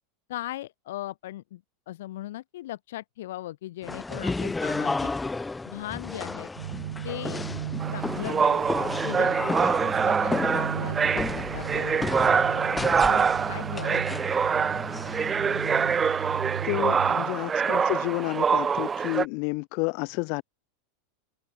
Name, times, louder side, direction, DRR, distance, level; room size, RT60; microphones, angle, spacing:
voice 1, 0.3-1.6 1.9-5.1 5.7-6.5 7.0-7.5 7.9-8.7 9.0-14.2 17.1-17.3, left 15 dB, 75° left, 2.2 m, -38 dB
sound 1, 3.8-16.0, left 3 dB, 10° left, 2.5 m, -33 dB
sound 2, 6.6-17.2, right 11 dB, 90° right, 2.0 m, -36 dB
sound 3, 7.8-19.3, right 6 dB, 20° right, 0.5 m, -25 dB
voice 2, 16.6-20.4, left 38 dB, 55° left, 2.3 m, -30 dB
supercardioid pair, 120°, 0 cm